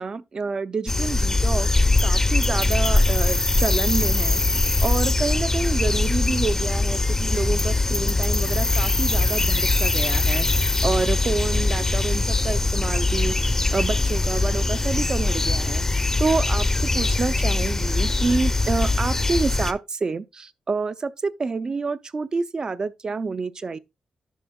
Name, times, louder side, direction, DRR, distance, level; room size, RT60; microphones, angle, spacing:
voice 1, 0.0-1.7 2.0-4.4 4.8-23.8, right 4 dB, 40° right, 0.5 m, -28 dB
sound 1, 0.9-19.7, left 2 dB, 20° left, 0.7 m, -22 dB
11.0 x 6.0 x 2.3 m
cardioid pair, 100°, 2 cm